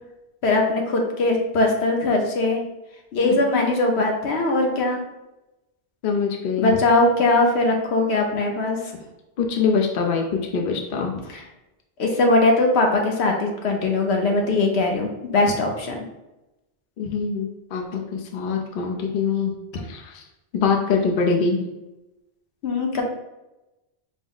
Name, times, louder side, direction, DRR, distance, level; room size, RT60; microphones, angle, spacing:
voice 1, 0.4-2.6 3.1-5.0 6.6-8.8 11.3-11.4 12.0-16.0 22.6-23.0, left 2 dB, 85° left, 1 dB, 1.0 m, -20 dB
voice 2, 6.0-6.8 9.4-10.2 10.5-11.1 17.0-19.5 19.9-20.2 20.5-21.6, left 5 dB, 60° left, 1 dB, 0.7 m, -23 dB
5.0 x 2.0 x 3.8 m, 0.98 s
omnidirectional pair, 1.1 m